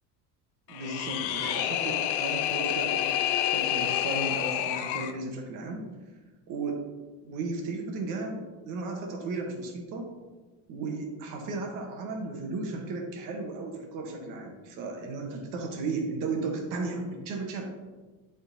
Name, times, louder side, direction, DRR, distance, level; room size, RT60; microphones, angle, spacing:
sound 1, 0.7-5.2, left 11 dB, 85° left, 0.6 m, -28 dB
voice 1, 0.7-5.9 6.5-6.8 7.2-10.1 10.7-17.7, right 3 dB, 55° right, 1 dB, 1.6 m, -35 dB
11.0 x 4.0 x 4.2 m, 1.3 s
cardioid pair, 175°, 36 cm